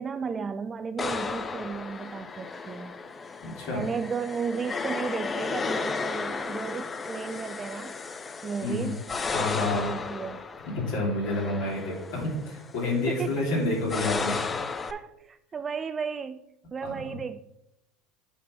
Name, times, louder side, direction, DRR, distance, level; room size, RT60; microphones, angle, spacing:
voice 1, 0.0-3.0 3.7-7.9 8.4-9.0 9.5-10.4 11.3-11.8 13.1-13.4 14.9-16.4 16.7-17.4, right 6 dB, 30° right, 10 dB, 0.3 m, -34 dB
sound 1, 1.0-14.9, left 4 dB, 25° left, 0.5 m, -34 dB
voice 2, 3.4-3.8 8.6-8.9 9.2-9.9 10.7-14.4 16.8-17.2, left 2 dB, 65° left, -2 dB, 3.0 m, -29 dB
8.5 x 3.4 x 5.8 m, 0.83 s
hypercardioid pair, 85°, 0 cm